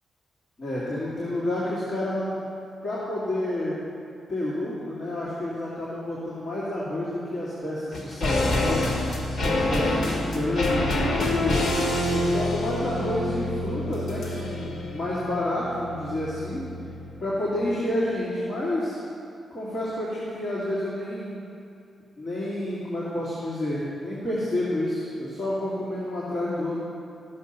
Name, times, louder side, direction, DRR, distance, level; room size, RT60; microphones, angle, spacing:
voice 1, 0.6-2.4 2.8-3.8 4.3-8.9 9.4-11.7 12.1-16.6 17.2-19.0 19.5-21.5 22.2-26.8, left 1 dB, 35° left, -9 dB, 2.3 m, -29 dB
sound 1, 7.9-17.3 17.6-17.7, left 1 dB, 60° left, 1.5 m, -27 dB
14.0 x 6.6 x 5.6 m, 2.7 s
wide cardioid pair, 165°, 0 cm